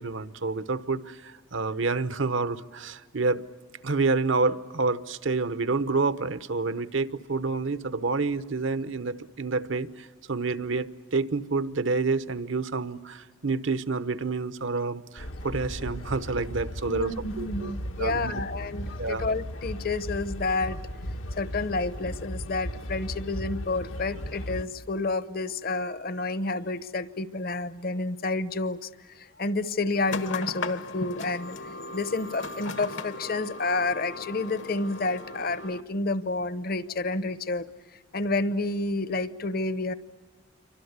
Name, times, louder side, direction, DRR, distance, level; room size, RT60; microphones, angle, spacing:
voice 1, 0.0-3.4 3.8-17.7 18.0-18.3 19.0-19.3, right 3 dB, 75° right, 13 dB, 1.0 m, -28 dB
sound 1, 15.2-24.6, equal, 85° left, 1.5 m, -36 dB
voice 2, 16.9-20.8 21.4-28.9 29.2-31.6 31.9-37.7 38.1-39.9, left 3 dB, 50° left, 15 dB, 0.9 m, -29 dB
sound 2, 30.1-35.8, left 3 dB, 70° left, 1.3 m, -37 dB
28.5 x 24.5 x 8.1 m, 1.5 s
head